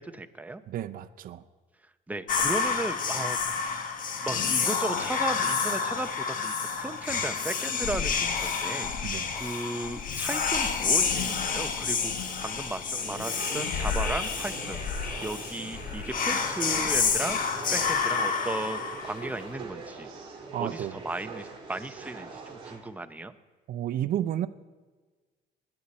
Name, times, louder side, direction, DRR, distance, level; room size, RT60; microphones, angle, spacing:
voice 1, 0.0-0.6 2.1-14.8 15.2-17.4 17.7-20.1 20.6-23.3, right 2 dB, 10° right, 9 dB, 0.7 m, -36 dB
voice 2, 0.7-1.4 9.0-9.3 20.5-21.0 23.7-24.5, right 11 dB, 55° right, 9 dB, 0.6 m, -31 dB
Whispering, 2.3-19.4, left 5 dB, 55° left, 1.4 m, -29 dB
sound 1, 12.9-22.8, right 4 dB, 30° right, 4.0 m, -42 dB
20.5 x 9.8 x 4.3 m, 1.4 s
cardioid pair, 110°, 17 cm